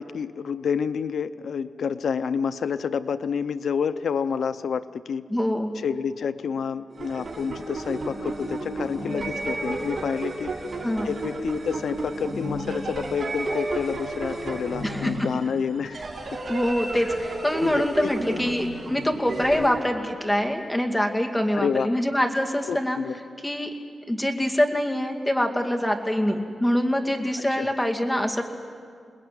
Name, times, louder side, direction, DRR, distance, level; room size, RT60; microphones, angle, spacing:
voice 1, 0.0-5.2 5.7-10.5 11.0-16.0 17.6-18.4 19.6-19.7 21.5-21.9 22.7-23.2 27.5-27.7, left 6 dB, 75° left, 11 dB, 0.6 m, -29 dB
voice 2, 5.3-5.7 10.8-11.1 14.8-15.1 16.5-23.0 23.4-23.7 24.1-28.4, equal, 5° left, 2 dB, 2.4 m, -24 dB
sound 1, 6.9-19.7, right 2 dB, 45° right, 6.6 m, -32 dB
28.5 x 20.5 x 9.4 m, 2.1 s
wide cardioid pair, 130°, 0 cm